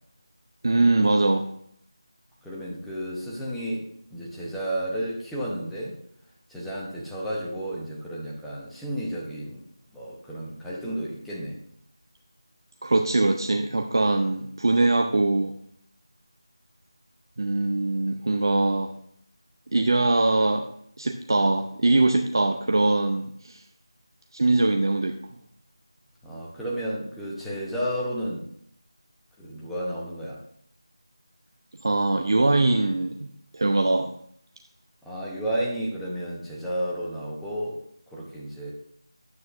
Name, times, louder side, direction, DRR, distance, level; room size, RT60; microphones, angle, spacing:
voice 1, 0.6-1.5 12.8-15.5 17.4-18.9 19.7-20.7 21.0-23.6 24.3-25.2 31.8-33.3 33.5-34.1, right 2 dB, 55° right, 5 dB, 0.6 m, -22 dB
voice 2, 2.4-5.9 6.5-9.6 9.9-11.6 26.2-28.4 29.4-30.4 35.0-38.7, right 1 dB, ahead, -7 dB, 0.8 m, -32 dB
9.4 x 7.9 x 2.5 m, 0.67 s
figure-of-eight pair, 170°, 3 cm